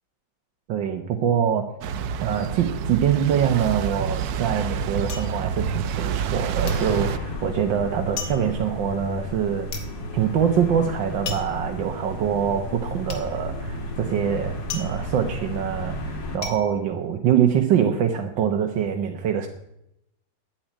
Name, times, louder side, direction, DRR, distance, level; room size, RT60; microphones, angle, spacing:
voice 1, 0.7-1.7 2.2-9.8 10.1-19.5, right 8 dB, 90° right, 4 dB, 1.8 m, -24 dB
sound 1, 1.8-7.2, right 7 dB, 65° right, 1.1 m, -28 dB
sound 2, 5.1-6.4 6.7-17.8 18.1-18.7, left 4 dB, 50° left, 2.1 m, -38 dB
sound 3, 6.6-16.4, left 1 dB, 75° left, 2.7 m, -33 dB
10.5 x 8.8 x 9.8 m, 0.81 s
omnidirectional pair, 2.0 m